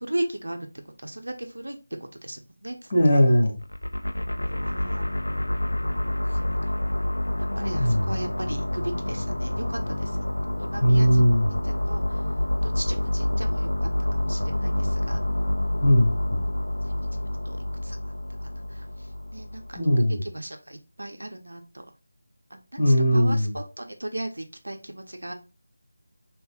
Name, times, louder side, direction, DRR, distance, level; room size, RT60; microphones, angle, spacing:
voice 1, 0.0-0.7 1.0-1.8 2.2-3.2 4.4-5.1 6.3-6.6 7.6-10.1 10.6-11.2 11.5-12.0 12.6-15.2 17.5-17.6 17.8-18.0 18.6-18.8 19.3-19.8 20.2-21.8 22.5-25.3, right 1 dB, 80° right, 5 dB, 0.8 m, -36 dB
voice 2, 2.9-3.5 7.8-8.1 10.8-11.5 15.8-16.4 19.7-20.2 22.8-23.6, equal, 35° left, -1 dB, 2.0 m, -19 dB
sound 1, 3.6-19.8, left 1 dB, 90° left, 0.5 m, -28 dB
4.9 x 2.5 x 2.4 m, 0.31 s
figure-of-eight pair, 165°, 0 cm